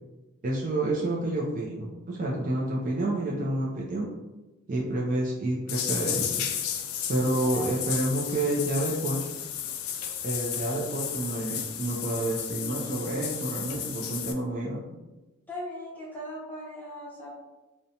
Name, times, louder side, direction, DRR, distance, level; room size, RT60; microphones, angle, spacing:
voice 1, 0.4-4.1 4.7-6.4 7.1-9.3 10.2-15.0, right 1 dB, 35° right, -3 dB, 0.4 m, -29 dB
sound 1, 5.7-14.3, left 9 dB, 75° left, 0.3 m, -33 dB
voice 2, 7.4-7.8 15.5-17.3, equal, 10° left, -6 dB, 0.7 m, -39 dB
2.5 x 2.1 x 2.7 m, 1.1 s
head